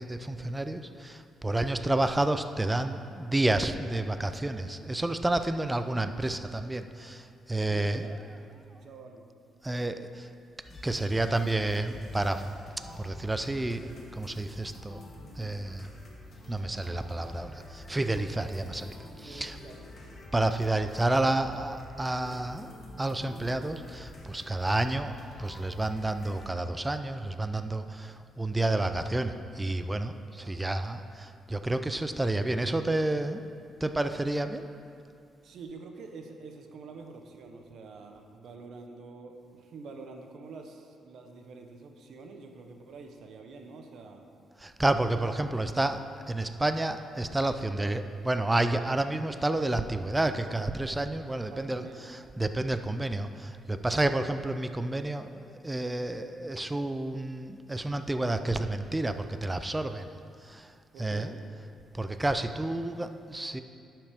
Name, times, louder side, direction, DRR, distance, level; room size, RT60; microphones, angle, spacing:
voice 1, 0.0-7.2 7.5-8.1 9.6-10.1 10.8-12.4 13.0-13.9 14.2-15.0 15.4-15.9 16.5-18.9 19.2-19.6 20.3-22.7 23.0-33.4 33.8-34.7 44.6-46.0 46.3-60.1 60.5-60.6 61.0-61.3 62.0-63.6, right 2 dB, 15° right, 9 dB, 0.4 m, -30 dB
voice 2, 7.6-9.3 19.3-20.8 30.4-30.6 35.4-44.2 51.5-52.0 60.9-61.3, right 4 dB, 70° right, 4 dB, 0.8 m, -47 dB
sound 1, 10.6-26.5, left 2 dB, 40° left, 1.4 m, -47 dB
11.5 x 5.8 x 3.5 m, 2.6 s
cardioid pair, 90°, 0 cm